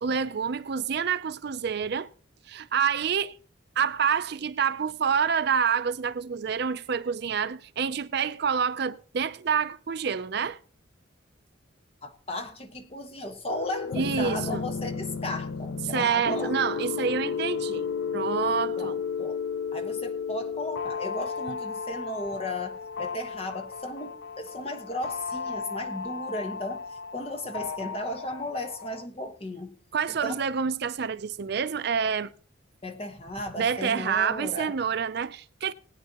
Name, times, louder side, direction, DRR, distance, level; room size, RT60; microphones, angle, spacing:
voice 1, 0.0-2.1 2.5-3.4 3.8-10.6 13.9-14.6 15.9-17.9 18.1-19.0 29.9-32.3 33.6-35.7, right 6 dB, 55° right, 0.4 m, -27 dB
voice 2, 12.0-16.5 18.8-19.4 19.7-29.7 30.2-30.4 32.8-34.7, left 1 dB, 30° left, 1.3 m, -35 dB
sound 1, 13.5-29.0, left 6 dB, 70° left, 0.5 m, -33 dB
20.5 x 8.9 x 2.9 m
head